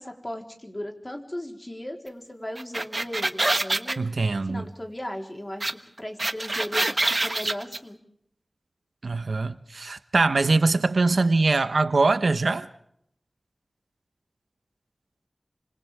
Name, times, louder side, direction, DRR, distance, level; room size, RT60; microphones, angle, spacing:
voice 1, 0.0-4.1 4.4-5.7 6.0-8.0, left 1 dB, 25° left, 2 dB, 4.0 m, -37 dB
sound 1, 2.6-4.0 5.6-5.7 6.0-7.8, right 2 dB, 35° right, 1.3 m, -25 dB
voice 2, 4.0-4.7 9.0-12.7, right 3 dB, 85° right, 10 dB, 1.1 m, -23 dB
29.0 x 26.5 x 3.6 m, 0.71 s
wide cardioid pair, 70°, 0 cm